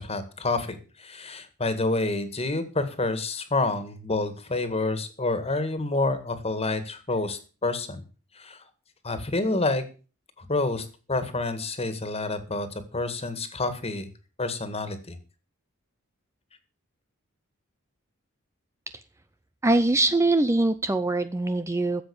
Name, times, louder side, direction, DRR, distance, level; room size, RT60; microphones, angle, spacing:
voice 1, 0.0-8.0 8.4-8.6 9.0-9.8 10.4-12.7 12.9-14.1 14.4-15.2, left 2 dB, 30° left, 11 dB, 1.9 m, -28 dB
voice 2, 19.6-22.0, right 2 dB, 15° right, 11 dB, 0.5 m, -23 dB
13.5 x 7.7 x 7.1 m, 0.36 s
head